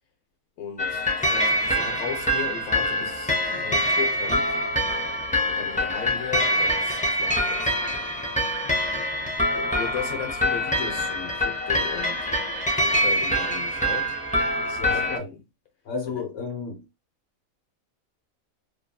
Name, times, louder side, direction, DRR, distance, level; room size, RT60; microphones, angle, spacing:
voice 1, 0.6-4.6 5.5-7.8 9.6-12.3 12.8-14.2 14.6-15.4 16.1-16.2, left 7 dB, 85° left, 1.3 m, -36 dB
sound 1, 0.8-15.2, equal, 10° left, 0.3 m, -25 dB
voice 2, 14.8-15.3 15.8-16.9, left 4 dB, 55° left, 1.3 m, -32 dB
2.9 x 2.5 x 2.3 m
omnidirectional pair, 1.4 m